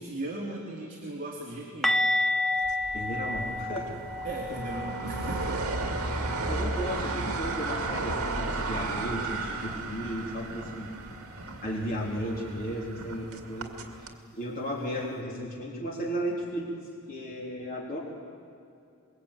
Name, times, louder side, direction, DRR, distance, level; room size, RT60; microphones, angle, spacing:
voice 1, 0.0-2.0 4.2-5.8, right 1 dB, 35° right, -3 dB, 3.2 m, -37 dB
sound 1, 1.8-7.6 7.9-8.1 8.4-8.6 11.8-11.9, left 1 dB, ahead, 0.7 m, -31 dB
sound 2, 2.6-14.1, right 3 dB, 70° right, 2.3 m, -34 dB
voice 2, 2.9-3.9 6.5-10.9 11.4-13.8 14.3-16.7 17.1-18.0, equal, 40° left, -3 dB, 3.8 m, -34 dB
26.0 x 22.0 x 8.8 m, 2.5 s
head